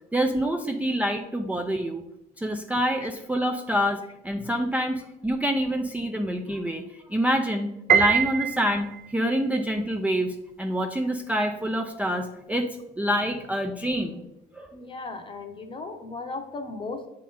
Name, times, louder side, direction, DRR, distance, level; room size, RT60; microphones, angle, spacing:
voice 1, 0.1-2.0 2.4-6.8 7.1-8.9 9.1-12.7 13.0-14.2 14.5-14.7, equal, 10° right, 3 dB, 0.4 m, -26 dB
Piano, 7.9-9.2, right 7 dB, 55° right, 0.7 m, -23 dB
voice 2, 14.7-17.1, left 3 dB, 30° left, 6 dB, 0.9 m, -36 dB
7.2 x 3.8 x 4.2 m, 0.87 s
cardioid pair, 110°, 17 cm